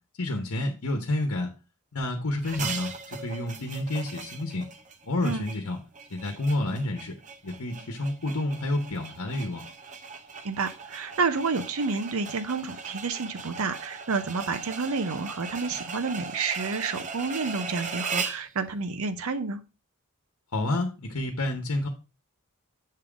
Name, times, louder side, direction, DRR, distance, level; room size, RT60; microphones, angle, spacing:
voice 1, 0.2-1.5 1.9-4.7 5.1-5.8 6.1-7.1 7.4-9.6 20.5-21.9, left 1 dB, 70° left, 3 dB, 1.1 m, -29 dB
sound 1, 2.4-18.5, right 5 dB, 35° right, 0.7 m, -38 dB
voice 2, 10.4-19.6, right 4 dB, 70° right, 11 dB, 0.7 m, -30 dB
7.5 x 3.7 x 5.0 m, 0.31 s
head